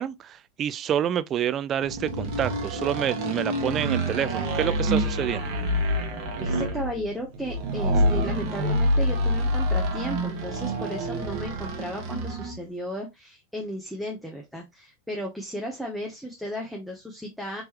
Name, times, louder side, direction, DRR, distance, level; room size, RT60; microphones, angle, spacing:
voice 1, 0.0-5.5, right 10 dB, 35° right, 0.3 m, -28 dB
sound 1, 1.8-12.6, equal, 50° right, 1.2 m, -27 dB
voice 2, 6.4-17.6, equal, ahead, 0.9 m, -35 dB
3.7 x 2.9 x 2.9 m
hypercardioid pair, 115°, 0 cm